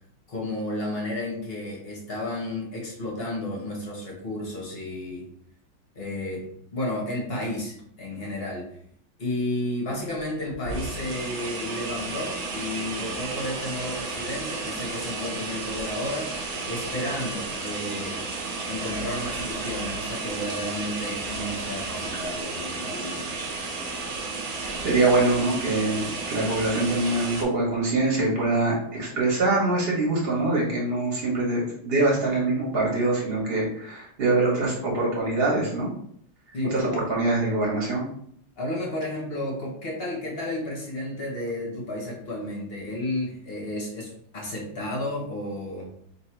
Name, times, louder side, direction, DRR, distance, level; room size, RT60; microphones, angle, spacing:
voice 1, 0.3-5.3 5.9-6.5 6.7-8.7 9.2-16.3 16.7-18.2 18.7-23.4 36.5-37.0 38.6-45.9, left 1 dB, 45° left, -2 dB, 0.8 m, -32 dB
sound 1, 10.5-27.4, right 3 dB, 65° right, 0.8 m, -33 dB
voice 2, 24.8-35.9 36.7-38.1, right 2 dB, 35° right, -3 dB, 1.2 m, -24 dB
3.0 x 2.8 x 4.4 m, 0.67 s
omnidirectional pair, 2.1 m